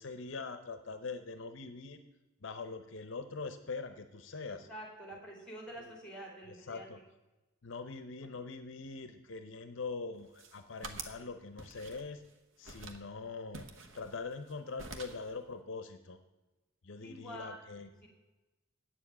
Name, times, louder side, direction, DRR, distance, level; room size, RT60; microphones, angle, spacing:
voice 1, 0.0-2.0 2.4-4.7 5.8-5.9 6.5-7.0 7.6-12.2 12.6-13.7 13.9-16.2 16.8-18.1, left 4 dB, 60° left, 9 dB, 0.7 m, -43 dB
voice 2, 4.5-6.8 17.0-18.1, equal, 5° left, -1 dB, 3.0 m, -47 dB
sound 1, 10.2-11.2 11.6-12.3 12.6-13.1 13.5-14.5 14.8-15.3, right 3 dB, 65° right, 1.1 m, -47 dB
8.9 x 7.0 x 8.7 m, 1.1 s
head